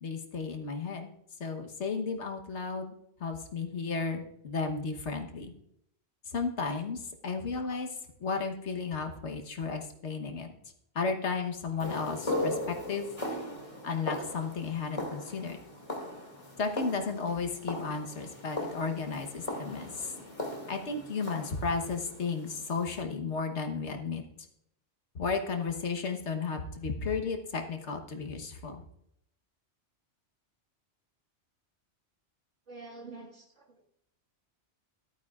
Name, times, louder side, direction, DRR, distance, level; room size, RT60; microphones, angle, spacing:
voice 1, 0.0-1.1 1.4-2.9 3.2-5.5 6.3-7.9 8.2-10.5 10.9-13.1 13.8-15.6 16.6-20.1 20.7-24.2 25.1-28.8, left 4 dB, 75° left, 4 dB, 1.5 m, -34 dB
sound 1, 11.8-23.0, left 1 dB, 30° left, 2.3 m, -38 dB
voice 2, 32.7-33.9, right 3 dB, 85° right, -1 dB, 2.3 m, -47 dB
13.5 x 12.0 x 2.4 m, 0.75 s
omnidirectional pair, 1.2 m